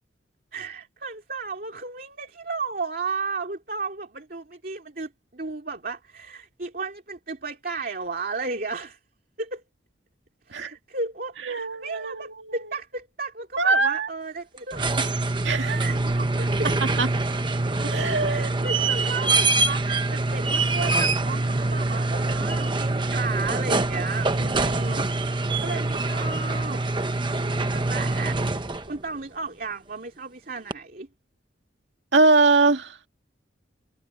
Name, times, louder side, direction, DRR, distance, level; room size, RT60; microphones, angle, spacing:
voice 1, 0.5-9.0 9.4-9.6 10.5-15.1 15.8-16.8 18.3-25.1 25.6-26.8 27.1-28.4 28.9-31.1, right 4 dB, 45° right, 2.6 m, -34 dB
voice 2, 11.5-12.6 13.6-14.1 15.5-15.9 17.0-17.1 17.8-18.5 32.1-32.9, right 3 dB, 65° right, 2.0 m, -22 dB
sound 1, 14.6-29.0 30.7-30.8, right 2 dB, 25° right, 1.0 m, -25 dB
head